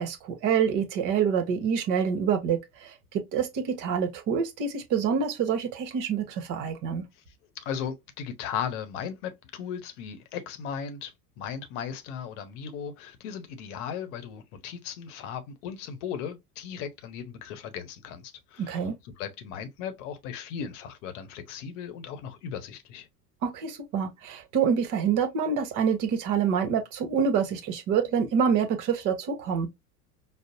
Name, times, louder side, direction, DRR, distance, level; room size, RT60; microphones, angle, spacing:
voice 1, 0.0-7.0 18.6-18.9 23.4-29.7, right 7 dB, 40° right, 0.9 m, -26 dB
voice 2, 7.5-23.1, left 8 dB, 50° left, 0.9 m, -37 dB
5.1 x 2.0 x 2.5 m
figure-of-eight pair, 80°, 47 cm